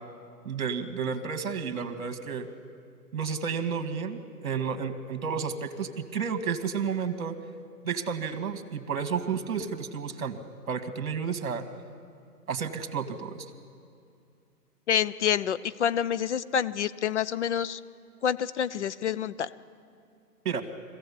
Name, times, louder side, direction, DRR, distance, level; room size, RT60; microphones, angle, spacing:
voice 1, 0.4-2.5 3.1-7.4 7.8-10.4 10.7-11.6 12.5-13.5 20.4-20.6, right 6 dB, 60° right, 9 dB, 2.1 m, -31 dB
voice 2, 14.9-17.8 18.2-19.5, left 9 dB, 45° left, 15 dB, 0.7 m, -27 dB
24.0 x 16.0 x 8.5 m, 2.4 s
hypercardioid pair, 155°, 48 cm